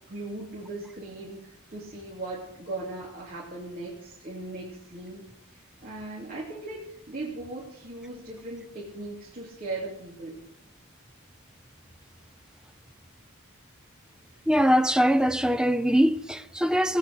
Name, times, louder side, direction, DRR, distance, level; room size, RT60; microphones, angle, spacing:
voice 1, 0.1-5.2 5.8-10.4, right 2 dB, 40° right, 3.3 m, -38 dB
voice 2, 14.5-17.0, equal, 5° right, 0.5 m, -22 dB
18.0 x 9.2 x 8.1 m
head